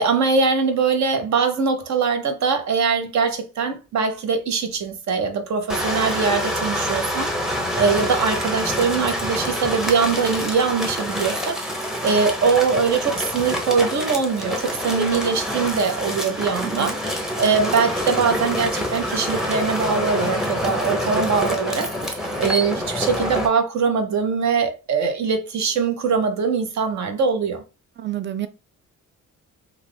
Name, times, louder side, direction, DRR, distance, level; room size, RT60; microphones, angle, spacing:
voice 1, 0.0-11.6 12.0-17.0 17.4-27.6, right 5 dB, 60° right, 0.8 m, -22 dB
sound 1, 5.7-23.5, equal, ahead, 0.7 m, -26 dB
voice 2, 16.6-17.0 28.0-28.5, right 13 dB, 35° right, 0.4 m, -29 dB
2.4 x 2.4 x 3.4 m
cardioid pair, 85°, 31 cm